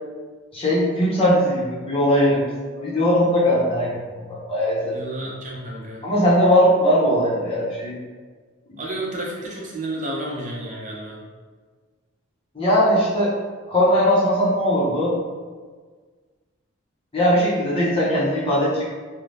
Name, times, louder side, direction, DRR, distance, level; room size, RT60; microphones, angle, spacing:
voice 1, 0.5-2.5 2.8-5.0 6.0-7.9 12.5-13.3 13.7-15.1 17.1-18.9, equal, 30° left, -7 dB, 0.7 m, -19 dB
voice 2, 4.9-6.0 8.8-11.2, right 1 dB, 40° right, -3 dB, 0.6 m, -31 dB
2.6 x 2.0 x 3.3 m, 1.5 s
head